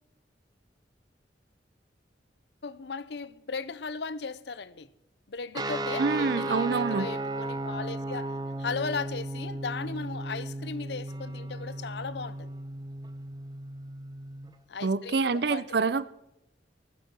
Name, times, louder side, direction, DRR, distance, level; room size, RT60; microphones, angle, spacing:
voice 1, 2.6-4.9 5.3-8.3 8.6-12.5 14.7-15.2 15.5-15.6, left 4 dB, 65° left, 0.6 m, -36 dB
sound 1, 5.5-14.5, right 2 dB, 20° right, 0.9 m, -35 dB
voice 2, 6.0-7.1 14.8-16.0, right 4 dB, 60° right, 0.5 m, -26 dB
20.0 x 7.3 x 6.1 m
head